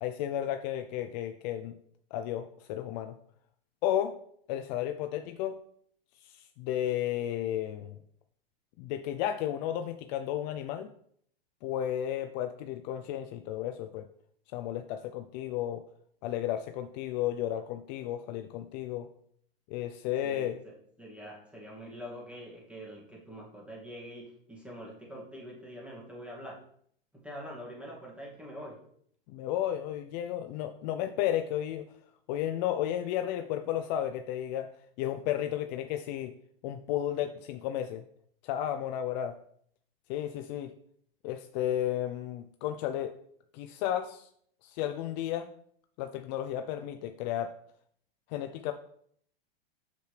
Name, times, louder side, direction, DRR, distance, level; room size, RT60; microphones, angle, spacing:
voice 1, 0.0-1.7 2.1-3.1 3.8-4.1 4.5-5.6 6.2-8.0 8.8-10.9 11.6-14.0 14.5-15.8 16.2-19.1 19.7-20.6 29.3-31.9 32.3-34.7 35.0-36.3 36.6-38.0 38.4-39.4 40.1-40.7 41.2-43.1 43.5-44.3 44.6-45.5 46.0-47.5 48.3-48.7, left 11 dB, 45° left, 7 dB, 0.5 m, -33 dB
voice 2, 20.2-26.6 27.1-28.8, equal, 5° right, -3 dB, 2.1 m, -45 dB
6.7 x 6.4 x 3.3 m, 0.65 s
hypercardioid pair, 120°, 30 cm